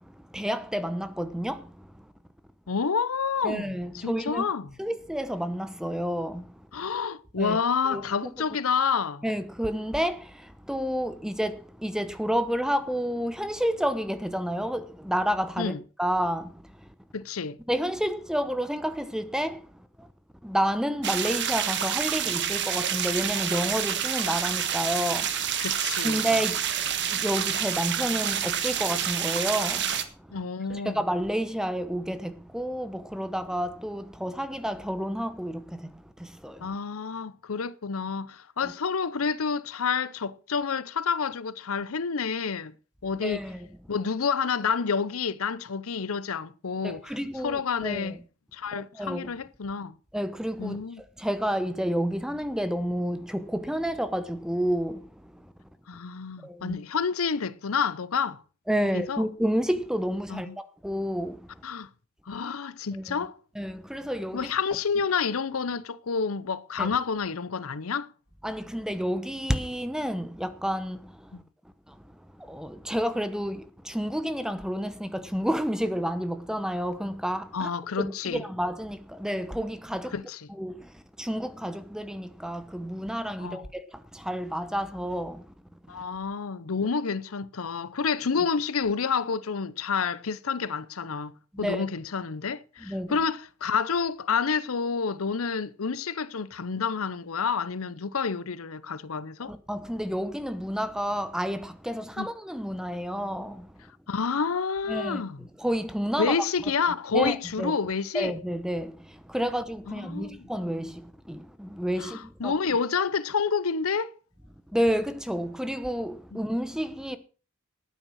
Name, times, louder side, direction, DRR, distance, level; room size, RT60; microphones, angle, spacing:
voice 1, 0.0-2.1 3.4-4.5 4.8-6.8 7.4-7.6 7.8-8.3 9.2-15.7 16.0-16.9 17.7-20.1 20.4-25.6 26.0-30.4 30.7-36.7 38.6-38.7 43.2-43.7 46.8-48.2 48.7-49.3 50.1-50.8 51.2-55.5 56.4-56.8 58.7-61.6 62.9-63.3 63.5-64.5 66.8-66.9 68.4-71.4 71.9-77.7 78.0-80.1 80.5-85.5 85.9-86.0 91.5-91.8 92.8-93.2 99.4-103.9 104.9-106.7 107.1-107.7 108.1-112.6 114.7-117.2, equal, 5° right, 1.0 m, -30 dB
voice 2, 2.7-3.7 4.0-4.6 6.7-9.2 15.6-15.8 17.1-17.6 25.6-26.2 30.3-31.0 36.6-42.7 43.0-43.4 43.9-47.0 47.4-48.2 48.5-50.0 50.6-51.0 55.9-58.4 58.9-59.2 60.3-60.5 61.6-61.9 62.3-63.4 64.3-68.1 71.3-71.4 77.5-78.4 80.1-80.4 83.4-83.6 85.9-99.5 102.2-102.3 104.1-105.4 106.2-108.3 109.9-110.4 112.0-114.1 116.3-116.4, left 5 dB, 80° left, 0.7 m, -29 dB
sound 1, 21.0-30.0, right 9 dB, 55° right, 1.5 m, -28 dB
13.0 x 9.0 x 6.3 m
head